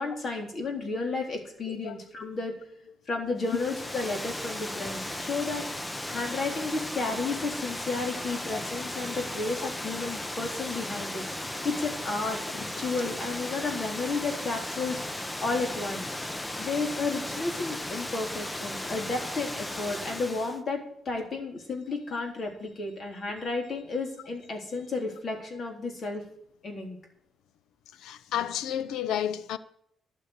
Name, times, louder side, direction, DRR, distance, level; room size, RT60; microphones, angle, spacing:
voice 1, 0.0-2.5 3.1-5.7 6.1-11.2 11.6-15.0 15.4-16.1 16.6-26.2 26.6-27.0, left 3 dB, 45° left, 3.9 m, -32 dB
Water, 3.4-20.6, left 1 dB, 15° left, 0.8 m, -36 dB
voice 2, 28.0-29.6, left 10 dB, 85° left, 0.7 m, -31 dB
12.0 x 6.6 x 8.3 m
cardioid pair, 90°, 0 cm